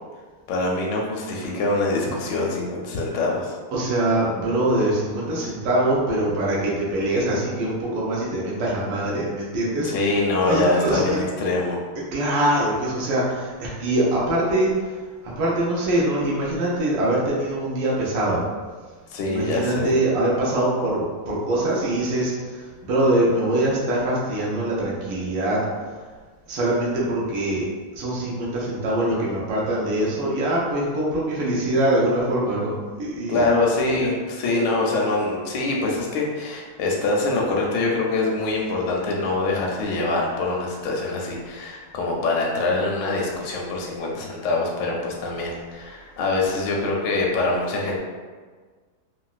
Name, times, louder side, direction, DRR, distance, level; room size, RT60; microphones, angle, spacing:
voice 1, 0.5-3.6 9.8-11.8 19.1-19.9 33.3-48.0, left 2 dB, 80° left, -1 dB, 1.2 m, -24 dB
voice 2, 3.7-9.9 10.3-11.2 12.1-14.7 15.2-18.4 19.2-22.3 22.8-25.6 26.5-27.7 27.9-33.5 33.9-34.1, right 1 dB, 85° right, -6 dB, 1.4 m, -23 dB
3.9 x 2.0 x 2.3 m, 1.5 s
omnidirectional pair, 1.9 m